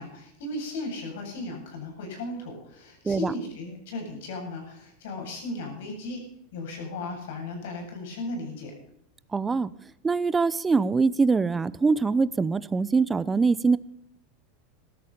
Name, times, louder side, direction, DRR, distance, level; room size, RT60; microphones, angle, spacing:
voice 1, 0.0-6.2 6.5-8.7, left 2 dB, 75° left, 2 dB, 8.0 m, -36 dB
voice 2, 9.3-9.7 10.0-13.8, right 4 dB, 15° right, 17 dB, 0.6 m, -23 dB
16.0 x 13.0 x 5.1 m, 0.75 s
supercardioid pair, 145°, 0 cm